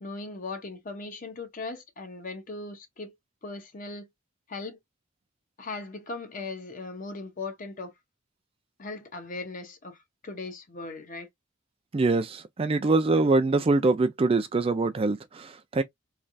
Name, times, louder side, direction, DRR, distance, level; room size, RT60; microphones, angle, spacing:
voice 1, 0.0-3.1 3.4-4.1 4.5-4.8 5.6-7.9 8.8-11.3, left 3 dB, 40° left, 0.8 m, -38 dB
voice 2, 11.9-15.8, right 3 dB, 30° right, 0.4 m, -24 dB
3.2 x 2.4 x 2.5 m
head